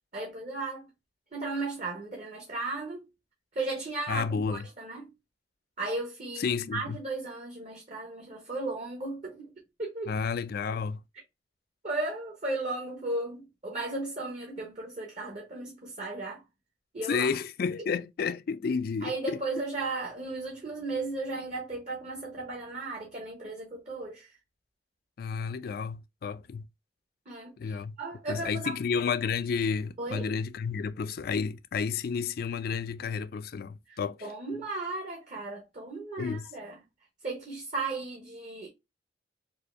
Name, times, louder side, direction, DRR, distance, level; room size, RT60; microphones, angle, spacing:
voice 1, 0.1-0.9 1.3-3.0 3.6-5.1 5.8-9.5 9.8-10.1 11.8-16.4 16.9-17.3 19.0-24.3 27.3-28.7 30.0-30.3 33.9-36.8 37.2-38.7, right 2 dB, 40° right, 0.9 m, -35 dB
voice 2, 4.1-4.7 6.4-7.0 10.1-11.0 17.1-19.4 25.2-26.7 27.6-28.0 28.3-34.2 36.2-36.5, left 5 dB, 55° left, 0.3 m, -31 dB
4.2 x 2.6 x 2.4 m
head